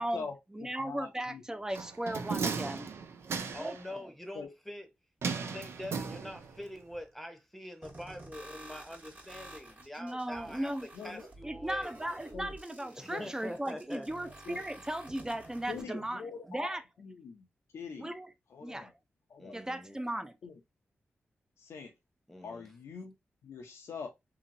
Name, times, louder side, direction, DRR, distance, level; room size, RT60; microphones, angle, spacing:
voice 1, 0.0-1.4 4.3-4.5 10.9-11.3 12.3-12.6 13.1-13.3 14.5-14.6 15.7-16.7 17.0-17.5 17.7-18.1 18.5-18.9 19.3-19.6 20.4-20.6 21.6-21.9 22.4-23.1 23.4-24.1, left 5 dB, 80° left, 0.6 m, -43 dB
voice 2, 0.5-2.9 3.6-4.0 10.0-10.9 11.4-16.8 18.0-18.3 18.6-18.9 19.5-20.4, right 1 dB, 15° right, 0.5 m, -37 dB
sound 1, 1.8-3.9 5.2-6.7 6.9-7.0, right 5 dB, 75° right, 0.4 m, -36 dB
voice 3, 3.5-4.9 5.4-10.7 11.0-11.9 13.0-14.1 15.7-16.0 19.4-20.0 22.3-22.7, left 1 dB, 5° left, 0.8 m, -44 dB
sound 2, 7.8-15.8, right 1 dB, 40° right, 1.2 m, -51 dB
2.8 x 2.7 x 2.6 m
cardioid pair, 55°, 4 cm